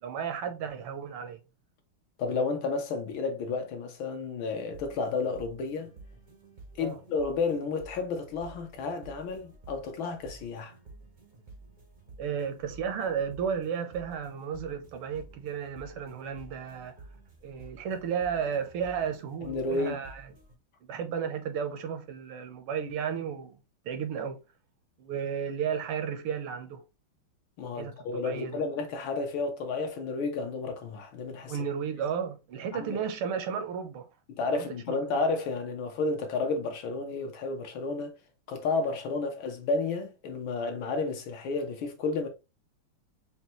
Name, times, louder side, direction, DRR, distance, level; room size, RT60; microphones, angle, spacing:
voice 1, 0.0-1.4 6.8-7.0 12.2-16.9 17.4-20.3 20.8-23.6 23.8-24.4 25.0-26.8 27.8-27.9 28.2-28.6 31.5-34.1 34.5-35.0, right 7 dB, 80° right, 1.6 m, -33 dB
voice 2, 2.2-5.9 6.8-10.7 19.4-20.0 27.6-31.6 32.7-33.0 34.3-38.2 38.5-42.3, left 4 dB, 70° left, 1.5 m, -31 dB
sound 1, 4.4-20.5, right 3 dB, 50° right, 0.5 m, -52 dB
5.4 x 2.3 x 2.9 m
omnidirectional pair, 2.4 m